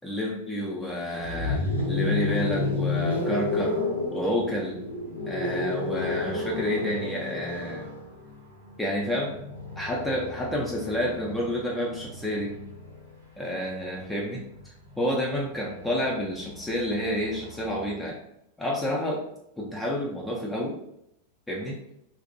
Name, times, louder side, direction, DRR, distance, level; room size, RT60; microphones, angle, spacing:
voice 1, 0.0-3.8 4.1-4.8 5.3-7.9 8.8-9.4 9.8-12.5 13.4-18.2 18.6-19.2 19.6-20.8 21.5-21.8, equal, 5° left, -4 dB, 0.4 m, -29 dB
sound 1, 1.2-13.2 14.4-18.0, left 3 dB, 90° left, 0.6 m, -32 dB
2.4 x 2.0 x 2.6 m, 0.77 s
figure-of-eight pair, 90°, 0 cm